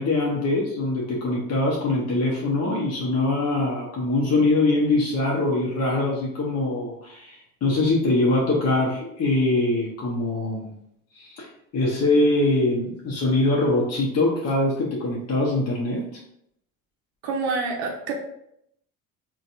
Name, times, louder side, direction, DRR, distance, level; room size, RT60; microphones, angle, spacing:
voice 1, 0.0-10.7 11.1-11.5 11.7-16.0, left 2 dB, 40° left, -3 dB, 0.9 m, -23 dB
voice 2, 17.2-18.1, right 4 dB, 60° right, 1 dB, 0.6 m, -27 dB
3.9 x 2.3 x 2.5 m, 0.75 s
hypercardioid pair, 65°, 42 cm